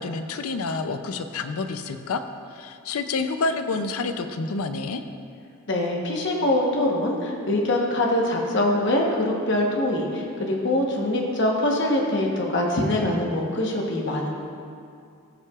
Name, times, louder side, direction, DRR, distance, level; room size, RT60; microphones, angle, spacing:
voice 1, 0.0-2.2 2.5-5.0, left 3 dB, 80° left, 9 dB, 0.5 m, -28 dB
voice 2, 5.7-14.3, left 1 dB, 55° left, 0 dB, 1.0 m, -23 dB
16.0 x 5.6 x 2.4 m, 2.4 s
head